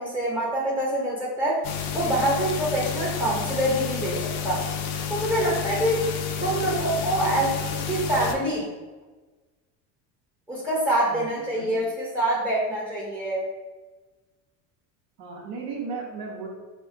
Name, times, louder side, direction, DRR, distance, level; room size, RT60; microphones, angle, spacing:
voice 1, 0.0-1.7 1.9-4.7 5.1-6.1 6.4-7.5 7.9-8.7 10.5-13.5, right 1 dB, 5° right, -6 dB, 0.6 m, -25 dB
sound 1, 1.6-8.3, left 7 dB, 55° left, 0.5 m, -30 dB
voice 2, 6.4-6.9 7.1-8.3 11.1-11.9 15.2-16.5, right 4 dB, 70° right, -3 dB, 0.8 m, -37 dB
2.3 x 2.2 x 3.7 m, 1.3 s
hypercardioid pair, 85°, 48 cm